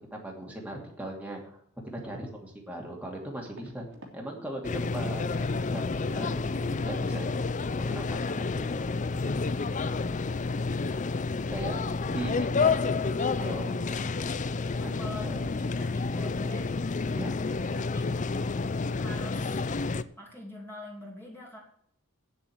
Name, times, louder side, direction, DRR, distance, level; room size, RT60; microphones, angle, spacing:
voice 1, 0.1-1.6 1.9-3.9 4.1-5.2 5.7-7.3 7.8-8.8 11.5-14.0 14.8-15.5 17.1-17.3, right 1 dB, 5° right, -1 dB, 2.6 m, -39 dB
sound 1, 1.9-2.0 3.4-4.2 4.5-4.9 5.2-5.4 8.3-8.4 8.7-8.9 9.2-9.3, right 1 dB, 55° right, 2.8 m, -52 dB
sound 2, 4.6-20.0, left 4 dB, 35° left, 0.5 m, -30 dB
voice 2, 14.8-16.7 17.7-18.1 18.9-19.6 20.2-21.6, left 1 dB, 10° left, -3 dB, 2.7 m, -46 dB
9.3 x 7.9 x 7.9 m, 0.65 s
head